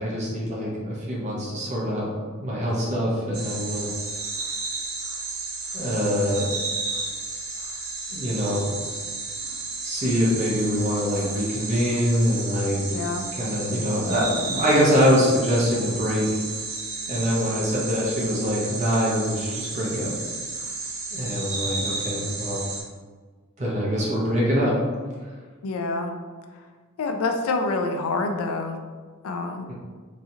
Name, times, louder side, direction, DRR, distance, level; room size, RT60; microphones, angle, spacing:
voice 1, 0.0-2.1 2.4-3.9 5.7-6.5 8.1-8.7 9.8-12.9 13.4-16.3 17.1-20.1 21.1-22.6 23.6-24.8 29.7-29.8, equal, 35° right, -5 dB, 0.8 m, -24 dB
sound 1, 3.3-22.8, right 3 dB, 75° right, 0.6 m, -32 dB
voice 2, 12.8-13.2 25.6-26.2 27.0-28.8 29.2-29.7, left 3 dB, 80° left, 5 dB, 0.4 m, -27 dB
3.0 x 2.4 x 2.7 m, 1.5 s
head